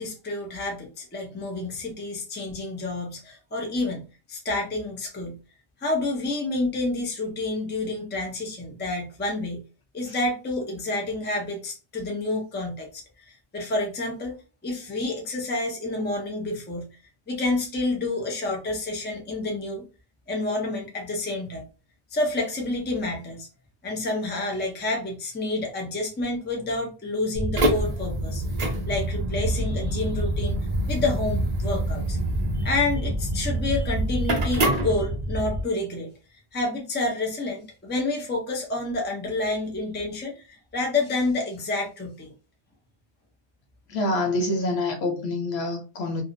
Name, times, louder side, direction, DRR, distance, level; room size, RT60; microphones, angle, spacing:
voice 1, 0.0-5.4 5.8-9.6 9.9-14.4 14.6-16.9 17.3-19.9 20.3-21.6 22.1-23.5 23.8-30.6 30.9-32.2 32.5-36.1 36.5-42.3, left 2 dB, 15° left, 0.4 m, -29 dB
sound 1, 27.3-35.6, right 1 dB, 50° right, 0.6 m, -26 dB
voice 2, 43.9-46.2, left 2 dB, 75° left, 0.9 m, -26 dB
2.6 x 2.0 x 2.5 m
omnidirectional pair, 1.1 m